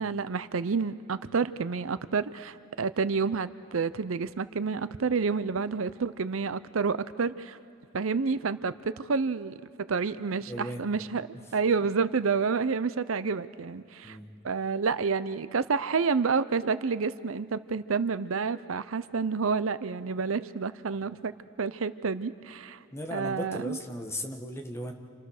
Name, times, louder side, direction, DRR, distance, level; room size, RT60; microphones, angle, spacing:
voice 1, 0.0-7.6 7.9-11.2 11.5-14.2 14.4-21.3 21.6-22.8 23.1-23.8, right 5 dB, 85° right, 15 dB, 0.6 m, -29 dB
voice 2, 10.5-10.9 11.3-11.6 14.0-14.3 22.9-24.9, equal, 15° left, 3 dB, 1.6 m, -37 dB
29.0 x 27.0 x 6.6 m, 2.4 s
head